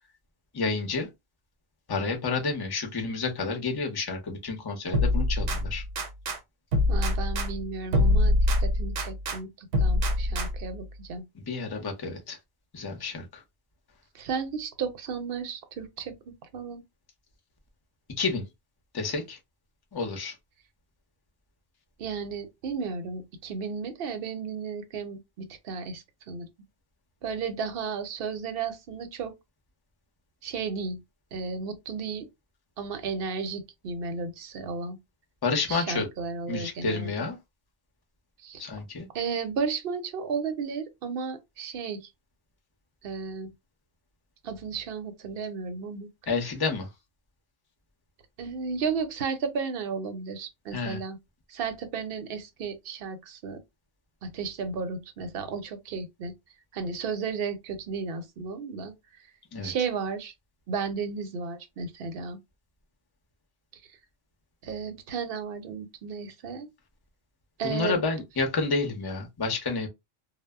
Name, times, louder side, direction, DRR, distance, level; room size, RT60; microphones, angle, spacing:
voice 1, 0.5-1.1 1.9-5.8 11.3-12.4 12.7-13.4 18.2-18.5 18.9-19.4 19.9-20.3 35.4-36.1 36.5-37.4 38.6-39.1 46.3-46.9 50.7-51.0 59.5-59.7 67.6-69.9, left 4 dB, 30° left, 0.5 m, -30 dB
sound 1, 4.9-6.4 6.7-9.4 9.7-10.8, left 1 dB, 85° right, 1.0 m, -25 dB
voice 2, 6.9-11.3 14.1-16.8 22.0-26.5 27.2-29.3 30.4-31.0 31.3-32.3 32.8-35.0 35.7-37.1 38.4-38.7 39.1-42.1 43.0-43.5 44.4-46.1 48.4-51.2 51.5-53.6 54.2-56.3 56.7-58.9 59.6-60.3 60.7-62.4 64.6-66.7 67.6-68.0, right 5 dB, 60° right, 0.8 m, -34 dB
2.0 x 2.0 x 3.4 m
omnidirectional pair, 1.2 m